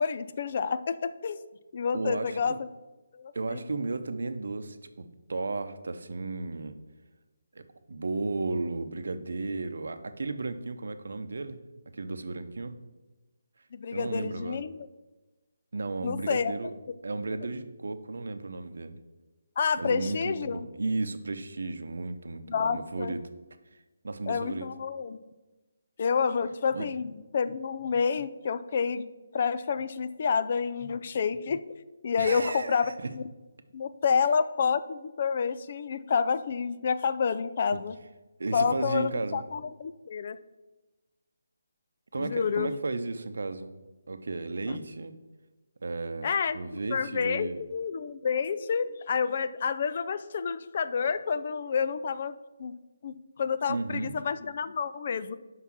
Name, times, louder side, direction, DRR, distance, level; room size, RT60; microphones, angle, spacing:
voice 1, 0.0-1.4 1.7-2.7 3.1-3.6 13.7-14.9 16.0-16.5 19.6-20.7 22.5-23.2 24.3-25.2 26.0-29.1 29.3-31.6 32.0-33.2 33.7-38.0 38.5-40.4 42.2-42.7 44.7-44.8 46.2-46.6 46.9-52.7 53.0-55.4, left 6 dB, 45° left, 13 dB, 0.4 m, -29 dB
voice 2, 1.9-2.4 3.3-6.8 7.5-7.6 7.9-11.6 11.9-12.7 13.9-14.6 15.7-16.7 17.0-19.0 19.8-23.2 24.0-24.7 26.7-26.9 32.2-33.1 37.7-37.8 38.4-39.4 42.1-43.7 44.1-45.1 45.8-47.6 53.7-54.2, right 3 dB, 70° right, 10 dB, 0.7 m, -34 dB
5.7 x 5.7 x 6.1 m, 1.1 s
figure-of-eight pair, 150°, 0 cm